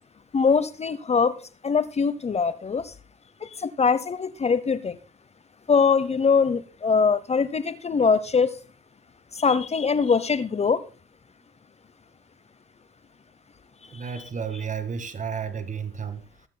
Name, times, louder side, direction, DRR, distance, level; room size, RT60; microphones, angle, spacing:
voice 1, 0.3-1.4 1.6-2.9 3.4-5.0 5.7-8.6 9.3-10.8, left 5 dB, 35° left, 16 dB, 0.9 m, -22 dB
voice 2, 13.9-16.2, right 6 dB, 40° right, 10 dB, 2.0 m, -32 dB
20.0 x 8.9 x 2.3 m, 0.36 s
cardioid pair, 90°, 20 cm